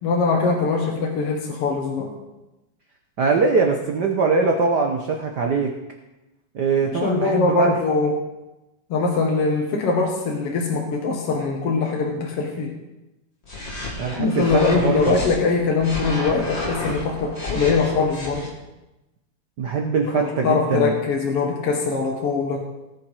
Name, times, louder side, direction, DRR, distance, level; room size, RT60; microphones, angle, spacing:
voice 1, 0.0-2.1 7.0-8.1 8.9-12.7 14.2-18.5 20.0-22.7, left 4 dB, 55° left, 0 dB, 2.1 m, -22 dB
voice 2, 3.2-5.7 6.5-7.7 14.0-15.1 19.6-20.9, right 4 dB, 90° right, 2 dB, 0.9 m, -22 dB
sound 1, 13.4-15.3 15.8-18.5, left 2 dB, 25° left, 2.1 m, -31 dB
18.5 x 6.9 x 4.9 m, 1.0 s
omnidirectional pair, 3.4 m